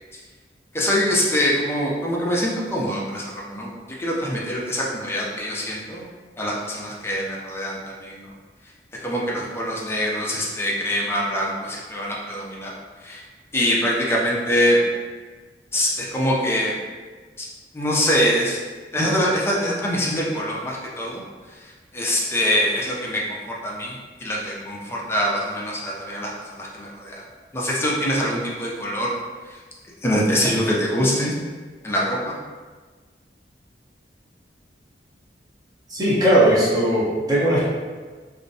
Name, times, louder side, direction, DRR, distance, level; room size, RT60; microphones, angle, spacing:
voice 1, 0.7-3.7 4.0-6.1 6.4-8.3 9.0-12.7 13.0-13.2 13.5-14.8 15.7-16.8 17.4-17.5 17.7-18.6 18.9-21.2 21.5-26.3 26.6-27.2 27.5-29.1 29.5-29.6 30.0-31.4 31.8-32.3, equal, 15° left, -3 dB, 0.4 m, -24 dB
voice 2, 35.9-37.6, right 1 dB, 20° right, -8 dB, 0.7 m, -18 dB
2.5 x 2.0 x 2.6 m, 1.4 s
head